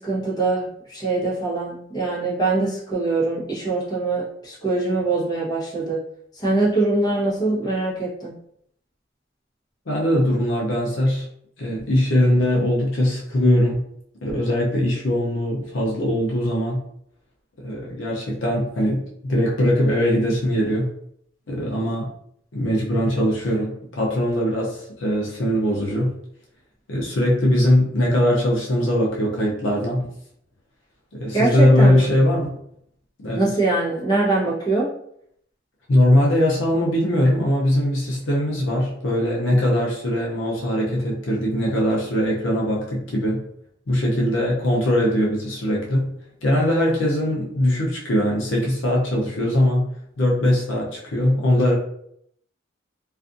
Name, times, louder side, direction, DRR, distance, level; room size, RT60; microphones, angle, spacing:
voice 1, 0.0-6.0 6.4-8.3 31.3-32.1 33.3-34.9, right 3 dB, 20° left, -6 dB, 0.9 m, -23 dB
voice 2, 9.9-11.3 11.6-13.8 14.2-16.8 17.6-20.9 21.5-22.1 22.5-26.1 26.9-30.1 31.1-32.6 33.2-33.5 35.9-43.5 43.9-46.1 46.4-49.9 50.2-51.7, left 1 dB, 75° left, -3 dB, 0.7 m, -21 dB
2.5 x 2.4 x 2.5 m, 0.69 s
head